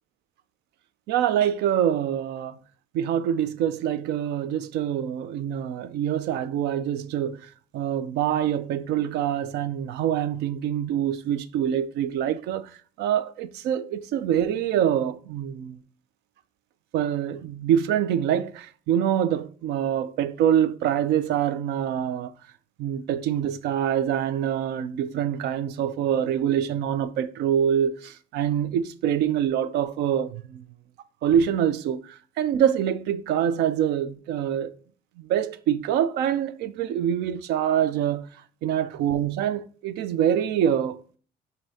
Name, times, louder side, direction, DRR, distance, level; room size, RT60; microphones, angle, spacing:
voice 1, 1.1-2.6 2.9-7.4 7.7-12.7 13.0-15.8 16.9-22.3 22.8-30.6 31.2-34.7 35.3-38.3 38.6-41.0, right 9 dB, 80° right, 0.4 m, -25 dB
5.0 x 2.7 x 2.7 m
cardioid pair, 110°, 17 cm